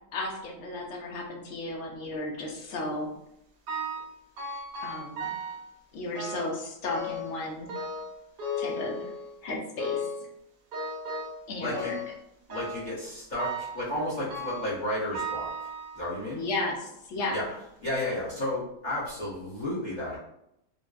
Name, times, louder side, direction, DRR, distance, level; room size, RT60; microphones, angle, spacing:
voice 1, 0.1-3.1 4.8-5.3 5.9-7.8 8.6-9.1 9.4-10.0 11.5-12.0 16.3-17.4, left 2 dB, 75° left, 0 dB, 0.6 m, -34 dB
sound 1, 3.7-4.1 4.4-5.7 6.1-6.6 6.9-7.4 7.7-9.4 9.8-10.3 10.7-11.4 11.7-12.2 12.5-12.9 13.4-13.8 14.3-14.8 15.1-16.2 16.9-17.0 17.8-17.9 18.3-18.4, left 1 dB, 80° right, 1.4 m, -35 dB
voice 2, 11.6-11.9 12.5-15.5 15.9-16.4 17.3-17.5 17.8-20.2, left 1 dB, 30° left, -9 dB, 1.0 m, -32 dB
3.9 x 2.1 x 2.3 m, 0.80 s
omnidirectional pair, 1.8 m